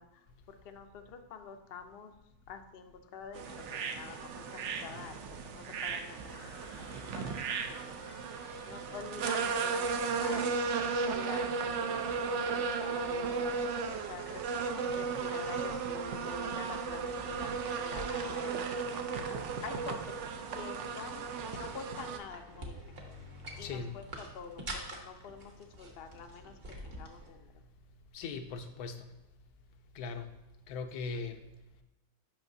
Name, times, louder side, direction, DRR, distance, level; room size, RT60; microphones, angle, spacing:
voice 1, 0.0-2.1 2.5-7.4 7.7-7.9 8.7-10.6 11.1-11.5 11.8-12.0 12.5-13.5 14.0-14.4 14.8-18.7 19.6-20.1 20.5-23.0 23.6-27.6, left 6 dB, 60° left, 6 dB, 0.6 m, -47 dB
sound 1, 3.4-22.2, right 5 dB, 65° right, 0.8 m, -35 dB
sound 2, 6.3-10.1, right 1 dB, 80° right, 3.2 m, -55 dB
sound 3, 13.3-27.3, right 1 dB, 40° right, 1.1 m, -49 dB
voice 2, 23.6-23.9 28.1-29.1 30.0-30.2 30.7-31.4, left 4 dB, 80° left, 7 dB, 1.1 m, -39 dB
8.9 x 5.7 x 2.7 m, 1.0 s
omnidirectional pair, 1.6 m